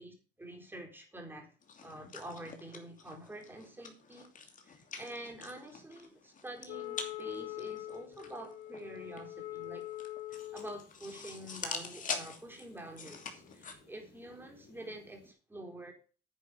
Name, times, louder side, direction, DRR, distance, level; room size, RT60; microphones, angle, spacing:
voice 1, 0.0-1.5 1.8-4.3 4.6-9.9 10.3-15.9, right 1 dB, 10° right, 4.1 m, -47 dB
sound 1, 1.6-13.7, left 5 dB, 45° left, 2.8 m, -45 dB
Wind instrument woodwind instrument, 6.7-10.8, left 15 dB, 80° left, 1.7 m, -43 dB
sound 2, 10.3-15.3, left 3 dB, 60° left, 3.8 m, -62 dB
10.0 x 9.1 x 5.1 m
cardioid pair, 115°, 19 cm